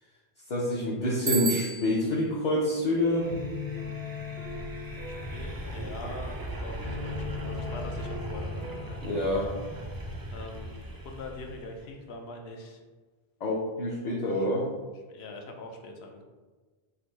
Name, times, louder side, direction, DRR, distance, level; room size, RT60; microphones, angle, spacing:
voice 1, 0.5-3.3 9.0-9.5 13.4-14.7, left 1 dB, 50° left, -3 dB, 0.6 m, -27 dB
Bicycle bell, 1.3-2.2, right 6 dB, 65° right, 0.7 m, -32 dB
sound 1, 2.3-10.2, left 6 dB, 90° right, 1.5 m, -41 dB
sound 2, 2.7-11.9, right 1 dB, 35° right, 0.4 m, -39 dB
voice 2, 5.1-9.1 10.3-12.8 14.3-14.5 15.1-16.2, left 2 dB, 85° left, 3 dB, 0.9 m, -43 dB
3.8 x 2.6 x 4.4 m, 1.3 s
omnidirectional pair, 1.0 m